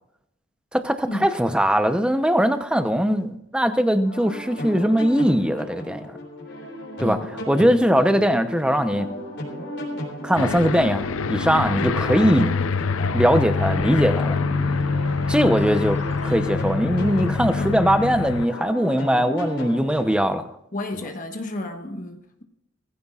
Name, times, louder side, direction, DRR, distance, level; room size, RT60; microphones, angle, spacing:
voice 1, 0.7-6.2 7.0-7.2 7.5-9.1 10.2-12.5 13.1-14.4 15.3-20.4, equal, 5° right, 8 dB, 0.7 m, -21 dB
sound 1, 4.0-20.1, equal, 55° left, 4.0 m, -35 dB
Aircraft, 10.4-18.5, left 4 dB, 85° left, 0.5 m, -25 dB
sound 2, 13.6-16.6, equal, 60° right, 2.2 m, -38 dB
voice 2, 20.7-22.4, left 2 dB, 40° left, 4 dB, 1.3 m, -32 dB
20.0 x 15.0 x 2.4 m, 0.80 s
head